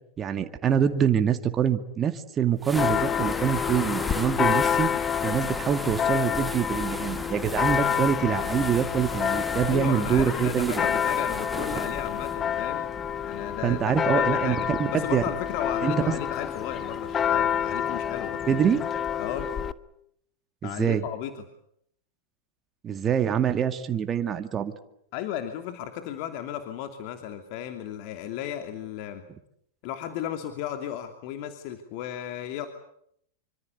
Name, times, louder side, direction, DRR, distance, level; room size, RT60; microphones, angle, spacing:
voice 1, 0.2-4.9 5.2-10.8 13.6-14.8 15.1-15.2 15.8-16.1 18.5-18.8 20.6-21.0 22.8-24.7, right 8 dB, 25° right, 7 dB, 2.2 m, -25 dB
sound 1, 2.6-12.4, right 2 dB, 5° right, 1.7 m, -38 dB
Church bell, 2.8-19.7, left 8 dB, 25° left, 1.4 m, -28 dB
voice 2, 9.6-12.8 13.2-18.4 19.2-19.5 20.6-21.4 25.1-29.2 29.8-32.7, left 10 dB, 55° left, 6 dB, 2.9 m, -34 dB
26.5 x 25.5 x 8.3 m, 0.72 s
hypercardioid pair, 105°, 0 cm